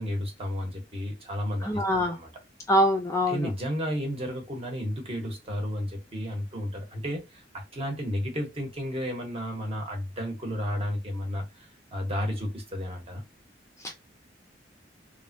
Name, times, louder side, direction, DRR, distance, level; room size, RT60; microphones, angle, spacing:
voice 1, 0.0-1.8 2.1-2.3 3.3-13.2, equal, 35° right, 0.9 m, -32 dB
voice 2, 1.6-2.2 2.7-3.5 13.8-13.9, equal, 15° left, 0.4 m, -24 dB
3.2 x 2.2 x 2.6 m
head